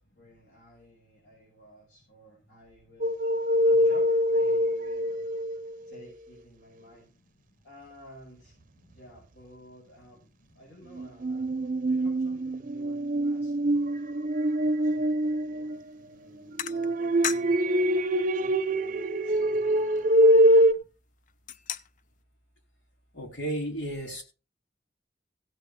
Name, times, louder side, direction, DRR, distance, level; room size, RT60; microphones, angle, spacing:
voice 1, 0.1-3.2 3.7-5.3 5.9-7.1 7.6-8.5 8.9-10.2 10.5-14.1 14.8-18.0 18.3-20.2, equal, 70° left, -4 dB, 6.2 m, -53 dB
sound 1, 3.0-5.7 10.9-16.0 16.5-20.7, equal, 50° right, 0.6 m, -24 dB
sound 2, 15.7-15.9 16.6-17.7 18.1-18.2 18.8-18.9 19.1-20.8 21.2-22.1, left 9 dB, 45° left, 0.4 m, -37 dB
voice 2, 23.1-24.2, right 1 dB, 85° left, 1 dB, 3.5 m, -33 dB
16.5 x 8.1 x 3.7 m, 0.34 s
head